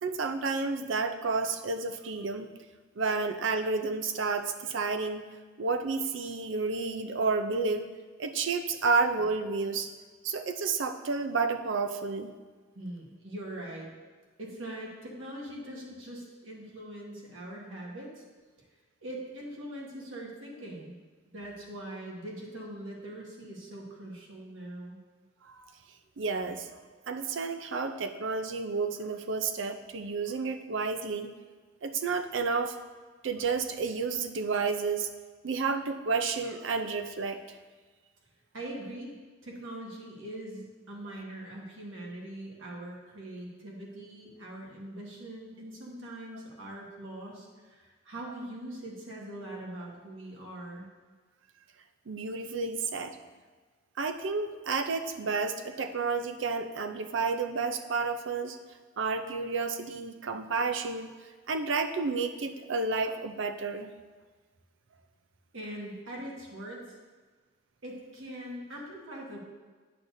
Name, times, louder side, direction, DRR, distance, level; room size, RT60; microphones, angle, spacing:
voice 1, 0.0-2.5 3.0-5.3 5.6-7.9 8.2-9.9 10.2-12.4 25.4-25.7 26.2-26.8 27.1-31.3 31.8-32.8 33.2-35.1 35.4-37.6 52.1-53.2 54.0-58.6 59.0-61.1 61.5-63.9, right 4 dB, 70° right, 8 dB, 0.5 m, -31 dB
voice 2, 12.7-13.9 14.4-18.2 19.0-20.9 21.3-25.0 38.5-39.1 39.4-50.9 65.5-67.0 67.8-69.4, right 1 dB, 85° right, -2 dB, 1.5 m, -42 dB
8.6 x 6.4 x 2.6 m, 1.4 s
head